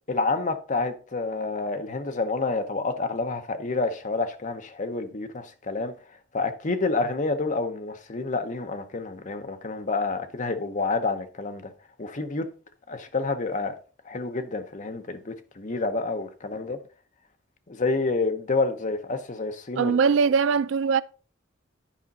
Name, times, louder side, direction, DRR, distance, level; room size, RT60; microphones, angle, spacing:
voice 1, 0.1-5.9 6.3-11.7 12.0-12.5 12.9-13.8 14.1-16.8 17.7-19.9, left 3 dB, 40° left, 0.8 m, -28 dB
voice 2, 19.8-21.0, right 5 dB, 70° right, 0.3 m, -21 dB
10.0 x 5.0 x 4.0 m
head